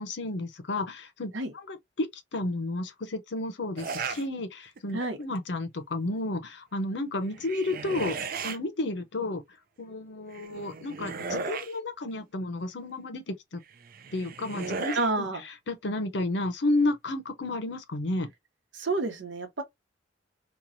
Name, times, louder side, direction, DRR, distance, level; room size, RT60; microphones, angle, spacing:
voice 1, 0.0-9.4 9.8-13.6 14.1-15.2 15.7-18.3, left 2 dB, 65° left, 0.7 m, -32 dB
sound 1, 3.8-4.3 4.8-5.2 7.2-8.6 10.3-11.8 13.7-15.1, right 5 dB, 50° right, 0.4 m, -36 dB
voice 2, 14.9-15.4 18.7-19.6, right 3 dB, 90° right, 1.0 m, -29 dB
3.0 x 2.3 x 2.6 m
head